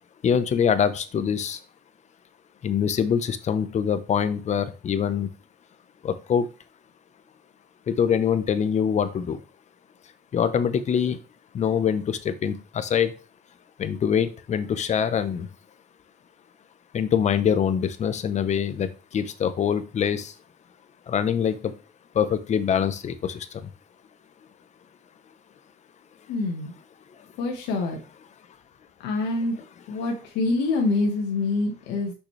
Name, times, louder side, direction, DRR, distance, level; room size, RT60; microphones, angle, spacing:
voice 1, 0.2-1.6 2.6-5.3 6.0-6.5 7.9-9.4 10.3-11.2 11.5-13.1 13.8-15.5 16.9-20.3 21.1-21.7 22.1-23.5, left 8 dB, 45° left, 11 dB, 0.8 m, -24 dB
voice 2, 26.3-26.7 27.4-28.0 29.0-29.6 29.9-32.1, left 3 dB, 90° left, 1 dB, 1.5 m, -25 dB
6.4 x 5.9 x 3.3 m, 0.33 s
cardioid pair, 110°, 17 cm